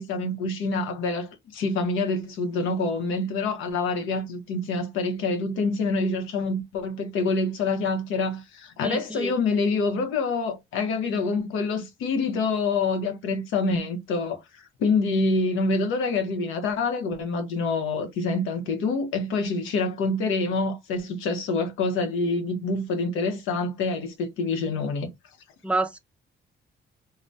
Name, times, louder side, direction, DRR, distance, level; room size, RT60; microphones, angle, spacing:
voice 1, 0.0-25.1, left 3 dB, 90° left, 0.7 m, -26 dB
voice 2, 8.8-9.3 25.6-26.0, right 2 dB, 5° right, 0.4 m, -27 dB
2.6 x 2.1 x 3.2 m
cardioid pair, 90°, 20 cm